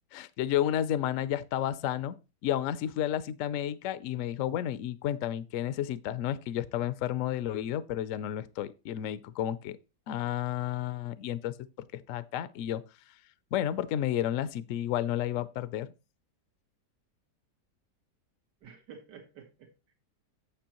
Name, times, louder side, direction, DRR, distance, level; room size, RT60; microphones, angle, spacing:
voice 1, 0.1-2.1 2.4-9.8 10.1-12.8 13.5-15.9, left 11 dB, 70° left, 0.8 m, -31 dB
voice 2, 18.6-19.9, right 6 dB, 90° right, 1.9 m, -51 dB
8.8 x 7.5 x 2.9 m
omnidirectional pair, 1.8 m